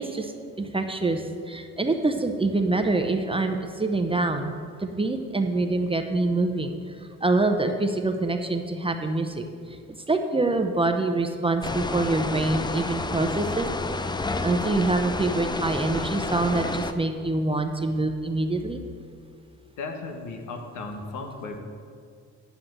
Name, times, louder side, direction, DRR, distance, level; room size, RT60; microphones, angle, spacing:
voice 1, 0.0-4.5 4.8-6.9 7.2-9.8 10.1-13.7 14.4-18.8, right 2 dB, 20° right, 5 dB, 0.8 m, -25 dB
sound 1, 11.6-16.9, left 3 dB, 15° left, 0.5 m, -30 dB
voice 2, 19.8-21.6, left 3 dB, 80° left, 4 dB, 1.5 m, -35 dB
9.8 x 5.8 x 8.0 m, 2.2 s
cardioid pair, 90°, 30 cm